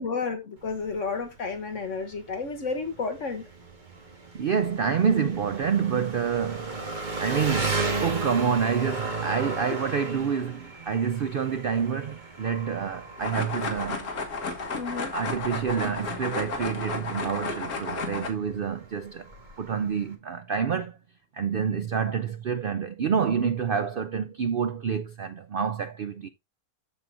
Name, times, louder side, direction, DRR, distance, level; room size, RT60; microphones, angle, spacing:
voice 1, 0.0-3.4 14.7-15.1, left 4 dB, 55° left, 1.4 m, -31 dB
Engine, 0.6-20.2, right 3 dB, 30° right, 1.6 m, -35 dB
voice 2, 4.3-6.8 7.2-14.1 15.1-19.3 19.6-21.0 21.3-26.3, right 7 dB, 85° right, 0.4 m, -28 dB
sound 1, 13.2-18.3, left 3 dB, 75° left, 1.9 m, -33 dB
13.5 x 4.6 x 2.6 m
omnidirectional pair, 1.6 m